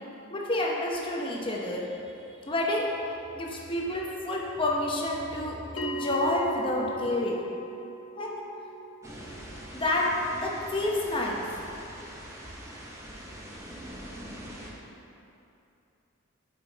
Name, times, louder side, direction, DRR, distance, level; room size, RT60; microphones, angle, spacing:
voice 1, 0.3-1.8 2.4-2.9 3.3-7.4 8.2-8.4 9.7-10.0 10.3-11.4, left 1 dB, 25° left, -2 dB, 0.9 m, -29 dB
Bell, 5.8-10.8, right 1 dB, 75° left, 0.8 m, -39 dB
sound 1, 9.0-14.7, equal, 15° right, 0.9 m, -43 dB
8.6 x 6.0 x 4.0 m, 2.8 s
head